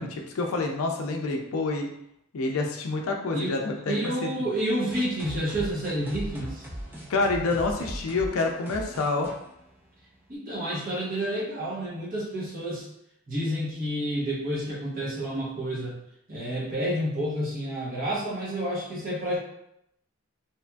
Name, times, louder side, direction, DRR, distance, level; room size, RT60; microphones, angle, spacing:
voice 1, 0.0-1.9 2.3-4.0 4.2-4.3 7.1-9.3, left 3 dB, 80° left, 2 dB, 0.4 m, -27 dB
voice 2, 3.9-6.7 10.3-12.9 13.3-16.0 16.3-19.4, right 1 dB, 40° right, -6 dB, 0.8 m, -29 dB
sound 1, 4.9-10.4, equal, 10° right, 0.4 m, -39 dB
2.8 x 2.5 x 2.2 m, 0.77 s
head